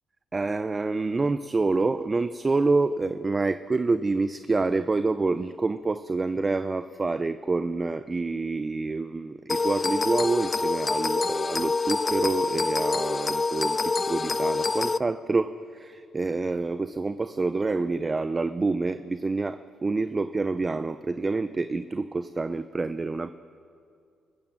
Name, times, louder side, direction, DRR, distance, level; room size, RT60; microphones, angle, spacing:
voice 1, 0.3-23.3, right 3 dB, 25° right, 12 dB, 0.6 m, -27 dB
sound 1, 9.5-15.0, left 4 dB, 30° left, 0.4 m, -26 dB
25.5 x 14.0 x 7.4 m, 2.4 s
cardioid pair, 90°, 0 cm